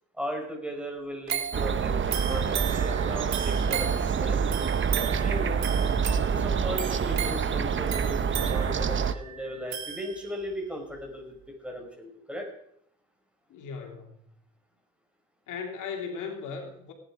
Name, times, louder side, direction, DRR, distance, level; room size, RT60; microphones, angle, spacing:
voice 1, 0.2-4.4 5.0-5.6 6.3-11.4 11.6-12.5, equal, 5° right, 2 dB, 5.4 m, -37 dB
sound 1, 1.3-10.5 11.0-11.1, right 8 dB, 65° right, 2.4 m, -36 dB
sound 2, 1.5-9.1, right 6 dB, 40° right, 0.9 m, -27 dB
voice 2, 13.5-14.3 15.5-16.9, left 5 dB, 85° left, 3 dB, 2.8 m, -38 dB
18.0 x 10.5 x 5.0 m, 0.70 s
cardioid pair, 90°, 30 cm